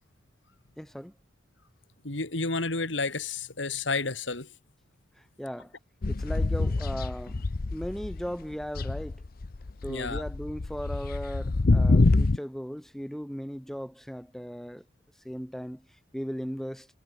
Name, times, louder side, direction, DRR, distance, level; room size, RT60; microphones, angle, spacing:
voice 1, 0.8-1.1 5.4-5.7 6.1-7.4 7.7-9.2 9.8-14.8 15.2-15.8 16.1-16.9, equal, ahead, 2.9 m, -37 dB
voice 2, 2.0-4.5 9.9-10.2, left 3 dB, 80° left, 3.0 m, -31 dB
sound 1, 6.0-8.3 8.6-12.4, left 3 dB, 50° left, 0.6 m, -26 dB
head